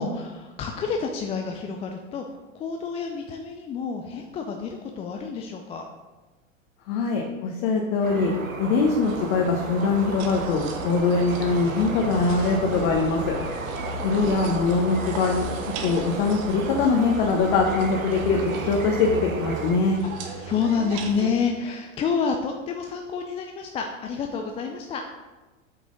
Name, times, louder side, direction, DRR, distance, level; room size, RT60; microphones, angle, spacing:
voice 1, 0.0-2.2 2.5-5.9 20.0-25.0, left 5 dB, 15° left, 3 dB, 0.4 m, -29 dB
voice 2, 6.9-8.3 8.6-13.3 14.0-15.4 15.8-20.0, left 4 dB, 45° left, 1 dB, 1.1 m, -22 dB
sound 1, 8.0-19.8, right 2 dB, 90° right, 0.9 m, -33 dB
sound 2, 9.0-21.3, right 5 dB, 40° right, 1.2 m, -37 dB
8.2 x 6.0 x 3.9 m, 1.2 s
figure-of-eight pair, 90°, 40 cm